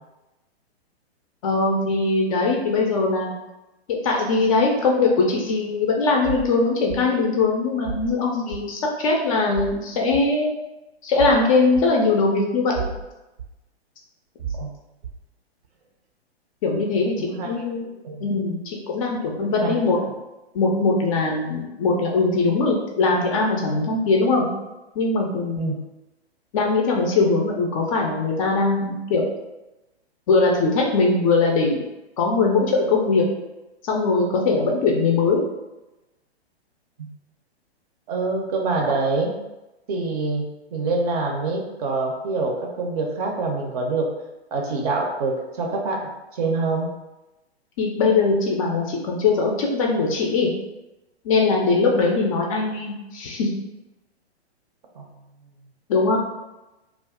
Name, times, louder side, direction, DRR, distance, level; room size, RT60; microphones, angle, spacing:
voice 1, 1.4-3.3 3.9-10.5 11.0-12.9 16.6-17.9 18.2-20.0 20.5-24.5 25.0-25.7 26.5-29.3 30.3-31.8 32.2-33.2 33.8-35.4 47.8-50.5 51.2-53.5 55.9-56.2, left 3 dB, 30° left, 0 dB, 0.4 m, -21 dB
sound 1, 6.2-6.5 6.9-7.0 7.8-8.1 8.5-8.6 9.5-9.8 10.1-10.2 11.2-11.4 11.8-11.9 12.8-13.0 13.4-13.5 14.4-14.6 15.0-15.2, right 6 dB, 75° right, 0.7 m, -31 dB
voice 2, 17.2-17.7 18.0-18.3 19.4-20.1 25.6-25.8 37.0-37.1 38.1-39.3 39.9-44.1 44.5-46.9 55.0-55.1, right 3 dB, 35° right, 1 dB, 0.6 m, -26 dB
2.4 x 2.2 x 3.4 m, 1.0 s
hypercardioid pair, 125°, 33 cm